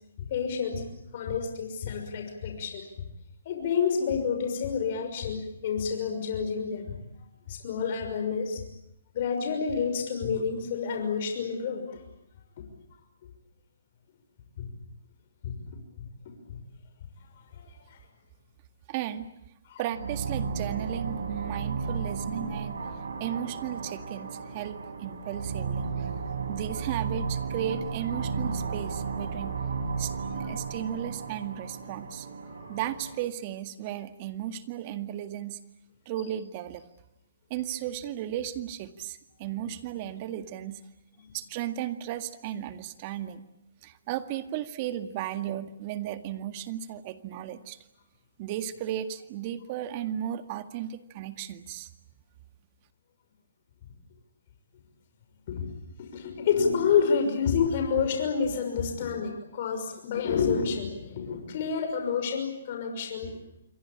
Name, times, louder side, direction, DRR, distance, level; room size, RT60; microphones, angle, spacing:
voice 1, 0.2-0.9 1.1-2.8 3.4-7.0 7.5-8.6 9.1-11.9 14.6-14.7 15.4-15.6 16.0-16.1 16.5-16.6 17.5-17.6 17.9-18.0 19.7-19.8 32.6-32.7 55.5-55.7 56.0-63.4, left 6 dB, 50° left, 4 dB, 6.1 m, -29 dB
voice 2, 18.9-19.3 19.8-22.8 23.2-26.1 26.5-29.6 30.0-32.3 32.7-35.6 36.1-36.8 37.5-40.8 41.3-43.5 43.8-47.8 48.4-51.9, right 11 dB, 35° right, 9 dB, 2.0 m, -35 dB
sound 1, 19.9-33.3, right 5 dB, 80° right, 4.8 m, -34 dB
28.0 x 23.0 x 8.9 m, 0.83 s
hypercardioid pair, 140°, 0 cm